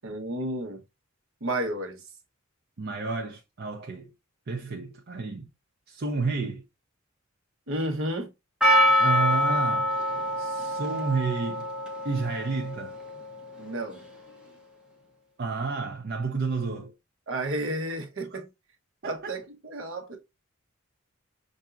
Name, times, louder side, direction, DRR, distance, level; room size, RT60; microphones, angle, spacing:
voice 1, 0.0-0.8 1.4-2.0 7.7-8.3 13.6-14.0 17.3-18.5 19.0-20.2, right 1 dB, 70° right, 1.0 m, -31 dB
voice 2, 2.8-4.1 4.5-5.5 5.9-6.6 9.0-9.9 10.4-11.7 12.0-13.0 15.4-16.9 18.3-18.4 19.0-19.3, right 4 dB, 50° right, 0.6 m, -31 dB
Percussion, 8.6-13.6, equal, 5° right, 0.9 m, -25 dB
5.7 x 2.6 x 2.4 m
head